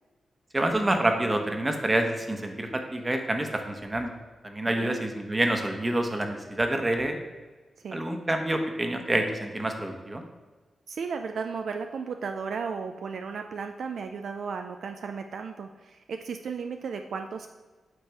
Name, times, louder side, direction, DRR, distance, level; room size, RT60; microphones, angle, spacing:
voice 1, 0.5-4.1 4.4-7.2 7.9-10.2, right 1 dB, 25° right, 4 dB, 1.1 m, -27 dB
voice 2, 10.9-17.5, right 5 dB, 75° right, 6 dB, 0.3 m, -35 dB
8.0 x 3.4 x 4.6 m, 1.3 s
supercardioid pair, 45°, 0 cm